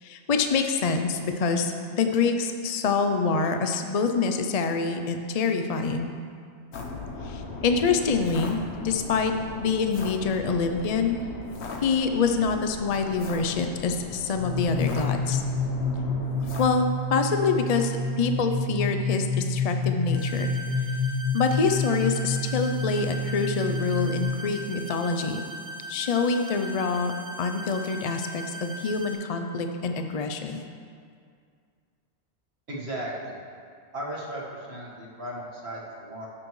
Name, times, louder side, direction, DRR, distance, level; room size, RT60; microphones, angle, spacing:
voice 1, 0.0-6.1 7.2-11.2 11.8-15.4 16.6-20.5 21.3-25.4 25.9-27.1 27.4-30.6, left 5 dB, 45° left, 6 dB, 0.5 m, -26 dB
sound 1, 6.7-16.7, left 3 dB, 80° left, 1.2 m, -38 dB
sound 2, 14.4-24.2, left 2 dB, 20° right, 2.3 m, -28 dB
sound 3, 20.1-29.1, right 1 dB, 50° right, 2.6 m, -39 dB
voice 2, 32.7-33.3 33.9-36.3, right 1 dB, 70° right, -4 dB, 1.9 m, -36 dB
13.0 x 8.7 x 3.1 m, 2.2 s
omnidirectional pair, 1.1 m